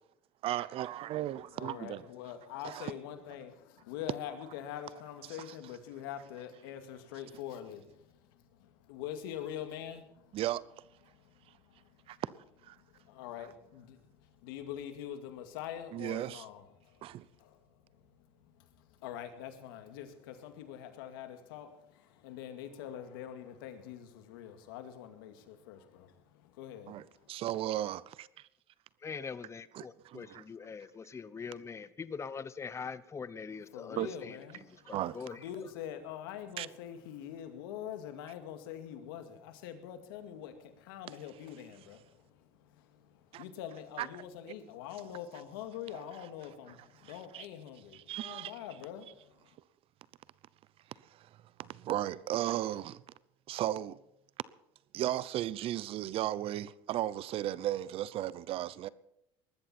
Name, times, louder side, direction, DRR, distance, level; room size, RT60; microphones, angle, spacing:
voice 1, 0.4-2.0 2.6-2.9 5.3-5.5 10.3-10.6 12.1-12.3 12.6-12.8 13.4-13.5 15.9-16.5 17.0-17.3 26.9-28.3 29.7-30.4 34.0-34.1 34.9-35.3 36.6-36.7 43.3-43.4 44.0-44.1 46.1-46.3 46.7-46.8 47.0-47.5 47.9-48.5 51.1-51.3 51.6-53.0 53.5-54.0 54.9-58.9, right 13 dB, 55° right, 0.8 m, -35 dB
voice 2, 1.6-10.4 11.2-11.3 11.7-11.8 12.9-14.0 14.4-17.0 17.4-17.6 18.6-18.7 19.0-27.1 33.5-34.9 35.4-49.0, left 10 dB, 90° left, 2.2 m, -44 dB
voice 3, 29.0-34.3 34.9-35.4, left 5 dB, 25° left, 0.9 m, -42 dB
19.5 x 13.5 x 4.4 m
supercardioid pair, 100°, 11 cm